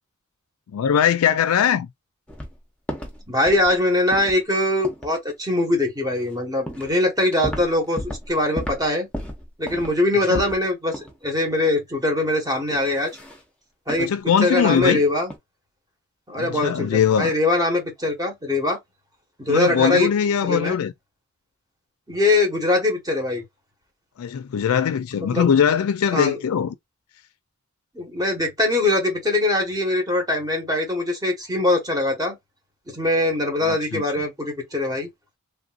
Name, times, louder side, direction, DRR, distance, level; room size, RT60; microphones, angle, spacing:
voice 1, 0.7-1.9 10.3-10.4 14.0-15.0 16.3-17.3 19.5-20.9 24.2-26.7 33.6-34.0, left 8 dB, 85° left, 0.3 m, -21 dB
sound 1, 2.3-2.6 2.9-3.2 3.5-3.8 4.1-4.4 4.8-5.1 6.2-6.3 6.7-7.0 7.2-8.3 8.6-8.9 9.1-10.6 10.9-11.2 11.5-11.6 12.7-13.4 13.9-14.1 14.6-14.9 15.2-15.4, equal, 5° left, 0.8 m, -33 dB
voice 2, 3.3-9.1 9.6-13.1 13.9-14.1 14.4-15.3 16.3-18.8 19.4-20.1 20.4-20.8 22.1-23.4 25.2-25.4 26.1-26.4 27.9-32.4 32.9-35.1, left 2 dB, 15° right, 1.2 m, -22 dB
3.4 x 2.5 x 2.5 m
head